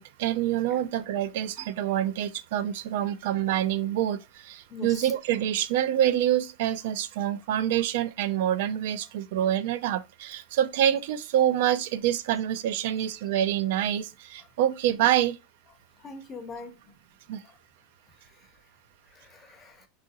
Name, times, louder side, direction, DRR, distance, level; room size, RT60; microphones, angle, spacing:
voice 1, 0.0-15.4 17.3-17.4, right 11 dB, 70° right, 0.4 m, -26 dB
voice 2, 4.7-5.1 14.4-14.5 16.0-16.9 17.4-17.6 19.1-19.9, left 4 dB, 25° left, 0.6 m, -43 dB
3.8 x 2.4 x 2.7 m
supercardioid pair, 135°, 0 cm